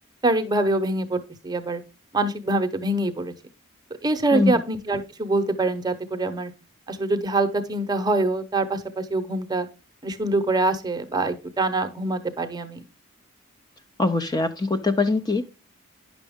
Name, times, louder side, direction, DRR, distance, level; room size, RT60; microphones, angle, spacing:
voice 1, 0.2-1.8 2.1-3.3 4.0-6.5 6.9-9.7 10.0-12.8, right 2 dB, 20° right, 7 dB, 0.8 m, -24 dB
voice 2, 14.0-15.5, left 3 dB, 20° left, 8 dB, 0.4 m, -22 dB
10.0 x 6.1 x 3.5 m, 0.30 s
head